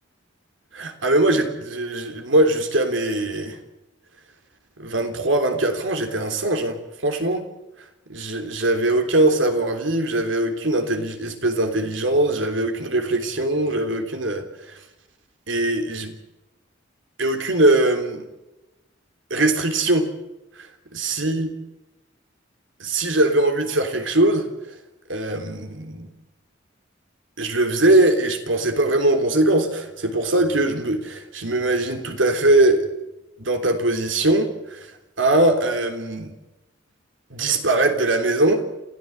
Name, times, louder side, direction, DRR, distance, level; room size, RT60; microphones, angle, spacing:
voice 1, 0.7-3.6 4.8-6.8 7.0-7.4 8.1-14.5 15.5-16.1 17.2-18.2 19.3-20.1 20.9-21.5 22.8-24.5 25.1-26.1 27.4-32.9 33.4-34.9 35.2-36.3 37.3-38.6, right 2 dB, 80° right, 6 dB, 3.5 m, -21 dB
29.0 x 14.5 x 7.9 m, 1.0 s
head